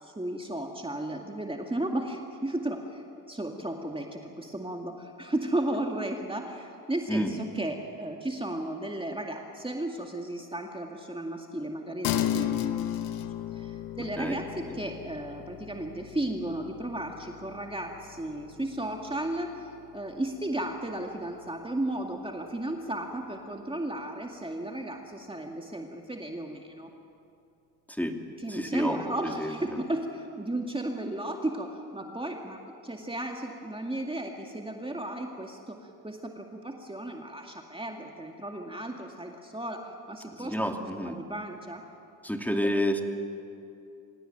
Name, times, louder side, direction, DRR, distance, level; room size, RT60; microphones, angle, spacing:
voice 1, 0.0-12.9 13.5-26.9 28.4-40.6 41.0-41.8, right 1 dB, 15° right, 2 dB, 2.2 m, -34 dB
sound 1, 12.0-21.8, left 11 dB, 80° left, 1.2 m, -36 dB
voice 2, 14.0-14.4 14.6-14.7 27.9-28.1 28.5-29.8 40.3-41.2 42.2-43.0, equal, 5° left, 3 dB, 2.7 m, -30 dB
25.0 x 17.5 x 9.1 m, 2.6 s
hypercardioid pair, 50°, 40 cm